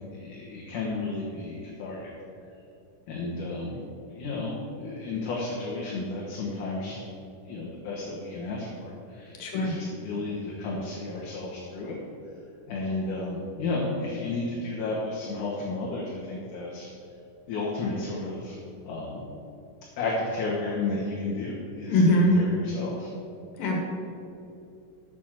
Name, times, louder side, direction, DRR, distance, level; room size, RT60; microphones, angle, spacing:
voice 1, 0.1-2.1 3.1-3.8 4.1-7.0 7.5-12.0 12.7-16.9 17.5-18.6 18.9-19.3 20.0-23.1, left 3 dB, 65° left, -4 dB, 2.6 m, -32 dB
voice 2, 9.4-9.7 21.9-22.4 23.6-23.8, left 1 dB, 85° left, 0 dB, 3.4 m, -21 dB
8.0 x 6.8 x 7.4 m, 2.7 s
omnidirectional pair, 4.1 m